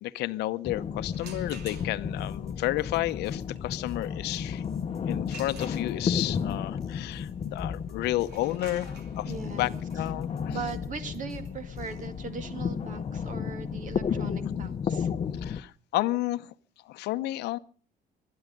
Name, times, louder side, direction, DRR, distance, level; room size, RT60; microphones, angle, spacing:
voice 1, 0.0-4.6 5.1-9.3 9.6-9.7 10.0-10.6 15.4-16.5 16.9-17.6, left 16 dB, 80° left, 14 dB, 0.8 m, -31 dB
sound 1, 0.6-15.6, left 7 dB, 40° left, 0.8 m, -33 dB
sound 2, 1.1-2.3 5.3-6.3 8.2-13.8, right 5 dB, 75° right, 2.9 m, -50 dB
sound 3, 2.2-12.1, left 2 dB, 5° left, 3.8 m, -50 dB
voice 2, 9.2-9.8 10.5-15.1, right 5 dB, 50° right, 9 dB, 2.2 m, -39 dB
24.5 x 10.5 x 5.2 m, 0.41 s
cardioid pair, 110°, 17 cm